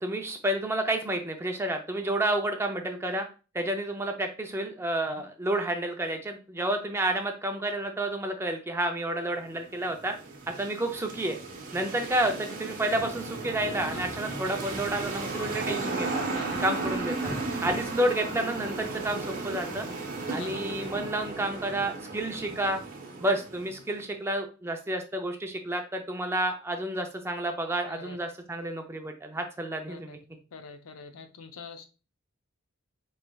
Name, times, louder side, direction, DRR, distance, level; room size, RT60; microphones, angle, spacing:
voice 1, 0.0-3.3 3.5-10.1 10.5-11.4 11.7-16.2 16.6-17.3 17.6-19.9 20.3-22.8 23.2-30.2, right 1 dB, 10° right, 0.4 m, -30 dB
sound 1, 9.4-23.9, right 3 dB, 40° right, 0.9 m, -35 dB
voice 2, 20.3-20.6 27.9-28.2 29.9-30.2 30.5-31.8, left 5 dB, 80° left, 0.6 m, -45 dB
4.3 x 3.2 x 2.3 m
head